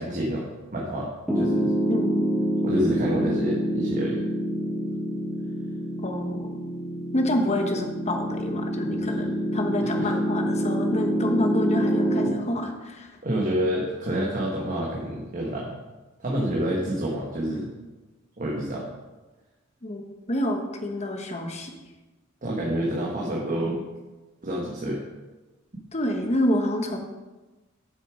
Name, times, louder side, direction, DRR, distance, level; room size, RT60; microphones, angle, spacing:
voice 1, 0.0-1.7 2.6-4.2 9.8-10.1 13.2-15.8 16.2-17.7 18.4-18.9 22.4-23.8 24.4-25.0, equal, 40° right, -3 dB, 1.2 m, -28 dB
Piano, 1.3-12.3, right 1 dB, 5° right, 1.2 m, -26 dB
voice 2, 1.9-2.3 6.0-6.5 7.1-13.1 19.8-20.0 20.3-21.7 25.9-27.0, left 1 dB, 30° left, 4 dB, 1.0 m, -28 dB
8.1 x 6.6 x 5.0 m, 1.2 s
head